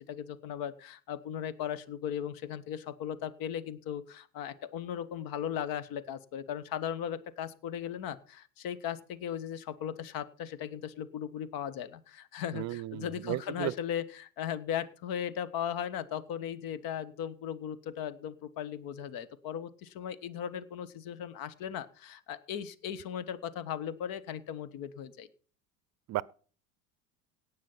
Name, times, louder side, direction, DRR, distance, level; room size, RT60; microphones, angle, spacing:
voice 1, 0.0-25.3, left 9 dB, 55° left, 1.5 m, -37 dB
voice 2, 12.5-13.7 26.1-26.2, right 16 dB, 40° right, 0.6 m, -34 dB
18.0 x 6.4 x 5.7 m
hypercardioid pair, 75°, 41 cm